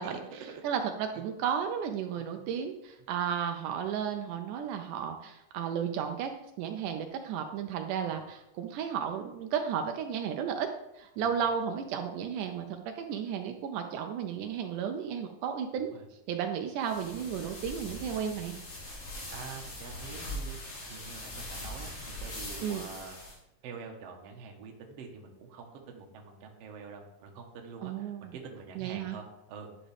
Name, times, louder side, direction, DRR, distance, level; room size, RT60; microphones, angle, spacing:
voice 1, 0.0-0.6 1.2-1.3 2.4-2.5 8.1-8.2 15.9-16.0 19.3-20.6 20.9-23.2 23.6-29.7, right 5 dB, 60° right, 2 dB, 1.9 m, -46 dB
voice 2, 0.6-10.7 11.0-15.9 16.3-18.5 22.6-22.9 27.8-28.4 28.8-29.2, right 8 dB, 80° right, 5 dB, 2.1 m, -33 dB
sound 1, 16.8-23.4, left 1 dB, 50° left, 3.2 m, -41 dB
11.0 x 6.0 x 3.4 m, 0.88 s
omnidirectional pair, 3.7 m